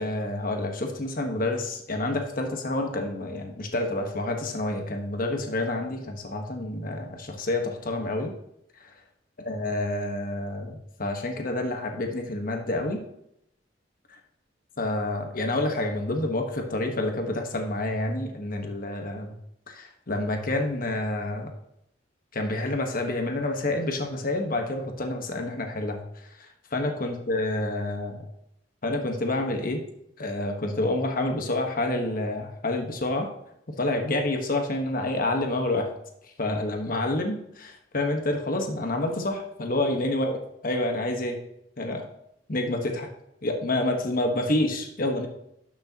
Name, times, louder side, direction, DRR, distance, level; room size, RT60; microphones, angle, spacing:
voice 1, 0.0-8.3 9.5-13.0 14.8-19.3 19.7-21.5 22.3-26.0 26.7-28.3 28.8-29.8 30.2-33.3 33.7-35.9 36.4-40.4 40.6-41.4 41.8-42.1 42.5-43.1 43.4-45.3, left 2 dB, 50° left, 3 dB, 1.2 m, -28 dB
12.0 x 6.4 x 2.9 m, 0.78 s
head